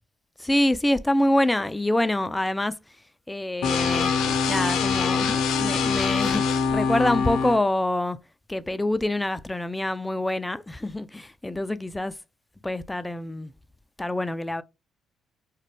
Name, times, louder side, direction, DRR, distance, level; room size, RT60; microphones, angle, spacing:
voice 1, 0.4-2.8 3.3-4.1 4.5-8.2 8.5-12.1 12.6-13.5 14.0-14.6, left 1 dB, 15° left, 0.3 m, -26 dB
sound 1, 3.6-7.6, left 5 dB, 70° left, 0.5 m, -24 dB
2.4 x 2.1 x 3.3 m
hypercardioid pair, 55°, 0 cm